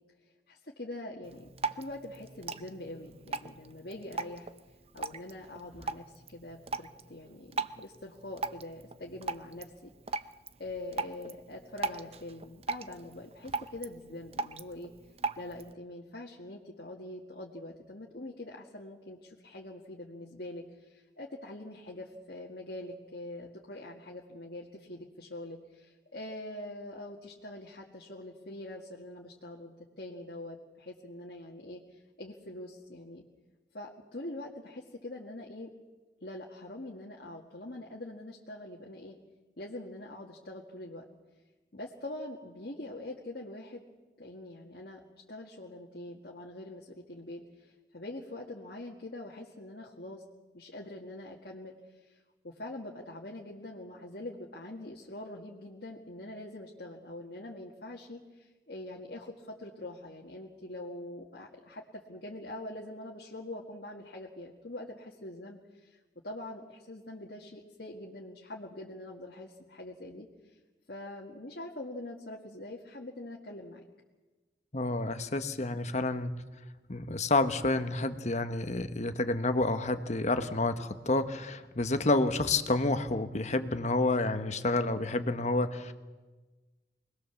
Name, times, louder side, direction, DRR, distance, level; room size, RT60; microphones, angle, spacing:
voice 1, 0.5-4.5 4.9-10.2 10.6-14.9 15.4-33.2 33.7-35.7 36.2-39.2 39.6-41.1 41.7-43.8 44.2-45.0 45.3-50.2 50.5-52.2 52.4-66.0 66.2-70.3 70.9-73.8, left 1 dB, 60° left, -3 dB, 1.9 m, -44 dB
Drip, 1.2-15.7, right 3 dB, 35° right, 0.6 m, -40 dB
voice 2, 74.7-76.3 76.9-85.9, left 2 dB, 40° left, 9 dB, 1.3 m, -29 dB
25.0 x 20.0 x 7.1 m, 1.3 s
head